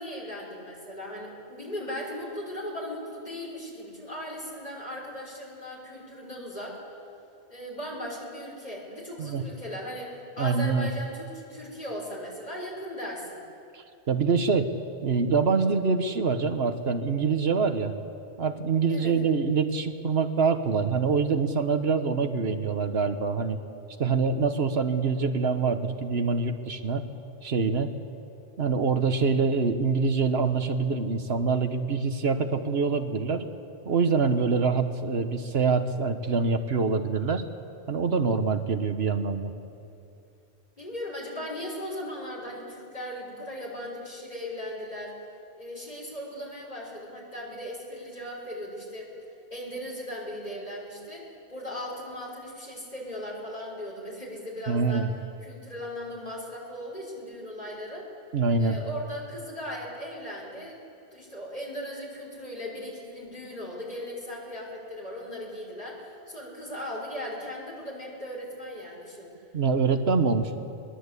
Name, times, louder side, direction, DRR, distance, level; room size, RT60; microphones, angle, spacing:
voice 1, 0.0-6.8 7.5-13.4 18.9-19.2 40.8-45.1 45.6-49.1 49.5-55.1 55.4-58.1 58.6-60.8 61.1-69.3, left 1 dB, 40° left, -4 dB, 5.7 m, -38 dB
voice 2, 10.4-10.9 13.7-14.7 15.0-17.9 18.4-23.6 24.0-27.0 27.4-27.9 28.6-33.5 33.8-37.4 37.9-39.5 54.7-55.1 58.3-58.8 69.5-70.6, right 5 dB, 70° right, 8 dB, 1.3 m, -25 dB
22.0 x 21.0 x 8.3 m, 2.6 s
omnidirectional pair, 1.1 m